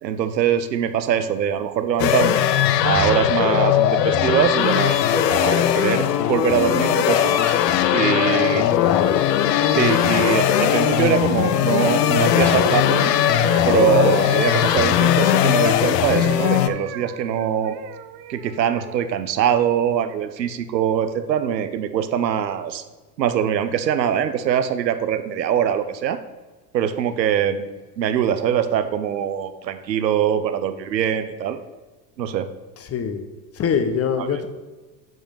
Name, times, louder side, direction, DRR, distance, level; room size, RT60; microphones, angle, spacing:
voice 1, 0.0-2.5 2.8-7.5 7.9-8.7 9.7-13.1 13.6-17.7 18.3-22.8 23.2-26.2 26.7-27.7 28.0-31.6 32.2-32.5 34.2-34.3, right 9 dB, 80° right, 10 dB, 0.8 m, -22 dB
sound 1, 2.0-16.7, left 10 dB, 75° left, 0.7 m, -19 dB
voice 2, 8.3-9.2 32.8-33.2 33.5-34.5, left 6 dB, 30° left, 8 dB, 1.0 m, -25 dB
sound 2, 10.4-15.8 16.2-19.1 19.7-20.0, right 10 dB, 50° right, 0.8 m, -37 dB
7.8 x 5.0 x 5.5 m, 1.2 s
hypercardioid pair, 80°, 50 cm